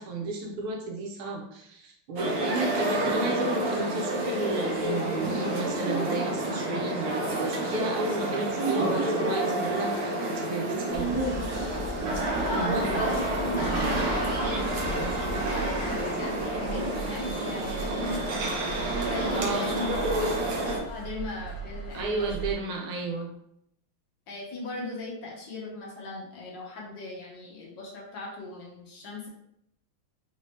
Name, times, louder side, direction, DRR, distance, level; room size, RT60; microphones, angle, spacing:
voice 1, 0.0-11.3 12.4-13.0 19.3-19.7 21.9-23.3, right 3 dB, 80° right, 0 dB, 1.6 m, -33 dB
sound 1, 2.2-20.8, right 1 dB, 60° right, 1.1 m, -29 dB
voice 2, 2.4-3.0 12.5-15.0 15.5-18.7 19.0-19.9 20.3-22.3 24.3-29.3, left 2 dB, 65° left, -2 dB, 1.5 m, -38 dB
sound 2, 10.9-15.9, left 2 dB, 40° right, 0.8 m, -39 dB
sound 3, 13.6-22.5, right 4 dB, 50° left, 1.2 m, -39 dB
4.1 x 2.7 x 3.3 m, 0.75 s
omnidirectional pair, 2.3 m